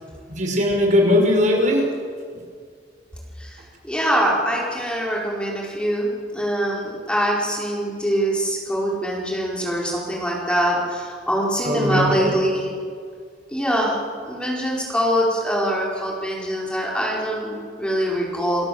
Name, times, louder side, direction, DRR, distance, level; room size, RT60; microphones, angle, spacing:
voice 1, 0.3-1.8 11.6-12.3, left 1 dB, 45° right, 1 dB, 5.8 m, -19 dB
voice 2, 3.4-12.7 13.5-14.0 14.3-18.7, equal, 5° left, -3 dB, 4.9 m, -24 dB
29.0 x 21.0 x 8.0 m, 2.1 s
head